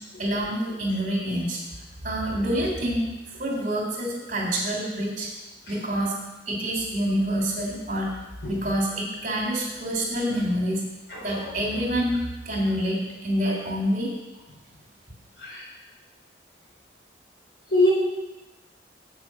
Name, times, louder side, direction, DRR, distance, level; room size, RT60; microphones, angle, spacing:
voice 1, 0.2-1.6 2.0-3.0 3.4-5.3 5.7-6.1 6.5-8.1 8.5-10.8 11.2-12.2 12.4-13.0 13.2-14.1, equal, 45° right, -2 dB, 2.9 m, -26 dB
voice 2, 11.1-11.5 15.4-15.6 17.7-17.9, left 1 dB, 90° left, -5 dB, 4.0 m, -24 dB
8.0 x 7.3 x 6.1 m, 1.0 s
head